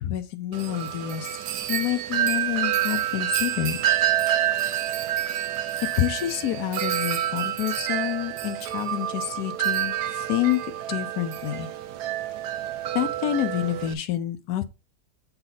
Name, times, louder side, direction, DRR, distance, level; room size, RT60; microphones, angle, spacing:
voice 1, 0.0-3.8 6.0-10.6 10.9-11.7 12.9-14.6, left 12 dB, 80° left, 1.1 m, -28 dB
Wind chime, 0.5-13.9, right 12 dB, 85° right, 1.2 m, -28 dB
7.8 x 4.2 x 4.0 m
omnidirectional pair, 1.7 m